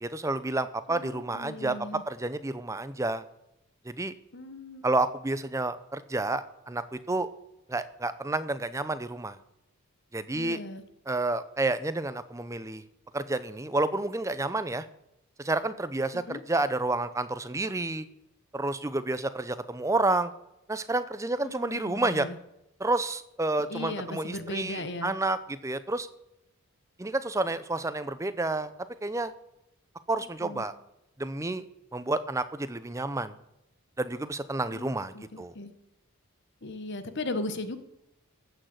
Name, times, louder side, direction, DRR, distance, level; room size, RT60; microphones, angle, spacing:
voice 1, 0.0-3.2 3.8-4.1 4.8-7.3 7.7-9.4 10.1-10.6 11.1-12.8 13.1-14.9 15.4-18.1 18.5-20.3 20.7-22.3 22.8-26.1 27.0-28.7 29.0-29.3 30.1-30.8 31.2-31.6 31.9-33.3 34.0-35.5, right 2 dB, 15° right, 13 dB, 0.6 m, -30 dB
voice 2, 0.9-2.0 4.3-4.9 10.3-10.8 16.3-16.4 21.4-22.4 23.7-25.2 30.4-30.7 34.6-35.7 36.6-37.8, left 2 dB, 50° left, 10 dB, 1.1 m, -37 dB
14.5 x 6.4 x 8.0 m, 0.86 s
head